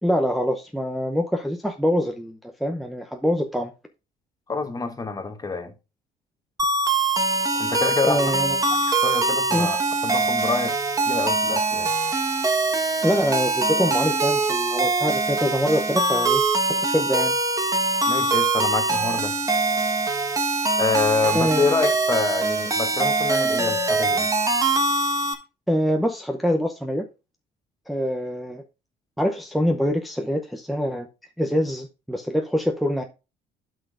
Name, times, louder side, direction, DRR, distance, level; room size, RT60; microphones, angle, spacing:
voice 1, 0.0-3.7 7.5-7.7 8.0-8.6 9.5-9.7 13.0-16.4 16.8-17.3 21.3-21.7 25.7-27.0 27.9-28.6 29.2-31.1 31.4-33.0, equal, ahead, 0.7 m, -24 dB
voice 2, 4.5-5.7 7.6-8.2 8.8-10.8 11.1-11.9 18.1-19.4 20.8-24.3, left 4 dB, 20° left, 1.3 m, -27 dB
sound 1, 6.6-25.3, right 3 dB, 20° right, 1.3 m, -23 dB
11.5 x 6.1 x 2.5 m
cardioid pair, 110°, 17 cm